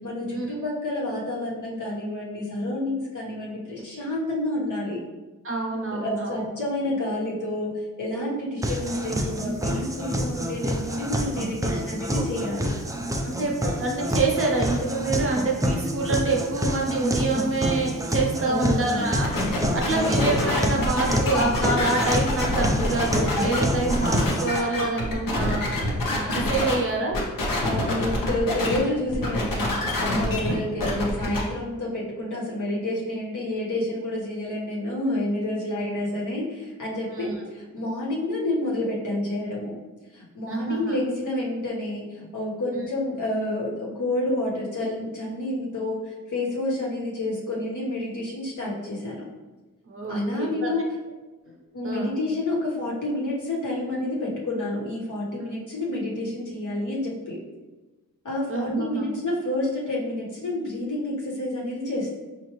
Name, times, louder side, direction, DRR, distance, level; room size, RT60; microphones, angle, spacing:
voice 1, 0.0-5.0 5.9-12.7 18.4-19.0 19.8-20.1 27.6-39.7 40.1-49.2 50.1-50.8 51.7-57.4 58.2-62.2, left 1 dB, 65° left, -5 dB, 1.2 m, -29 dB
voice 2, 5.4-6.4 13.2-25.9 26.1-27.2 37.1-37.4 40.5-40.9 42.8-42.9 49.9-50.9 51.8-52.1 58.5-59.1, right 3 dB, 40° right, -1 dB, 0.8 m, -27 dB
sound 1, 8.6-24.6, equal, 10° right, 0.4 m, -27 dB
sound 2, 19.2-26.7 27.1-28.8 29.1-31.4, left 1 dB, 85° left, 0.9 m, -26 dB
4.7 x 2.5 x 3.0 m, 1.2 s
cardioid pair, 75°, 33 cm